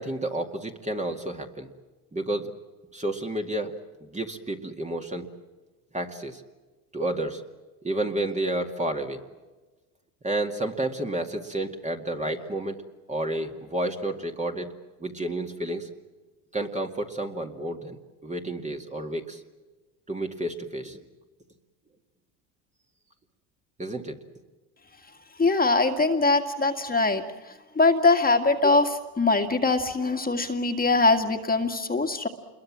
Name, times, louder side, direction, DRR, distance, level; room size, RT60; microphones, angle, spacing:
voice 1, 0.0-1.7 2.1-2.5 2.9-3.7 4.0-5.3 5.9-6.4 6.9-7.4 7.8-9.2 10.2-12.8 13.1-14.7 15.0-15.9 16.5-19.4 20.1-21.0 23.8-24.2, right 1 dB, 15° right, 3 dB, 2.2 m, -30 dB
voice 2, 25.4-32.3, left 3 dB, 20° left, 5 dB, 2.1 m, -22 dB
27.5 x 22.0 x 7.5 m, 1.2 s
supercardioid pair, 95°, 48 cm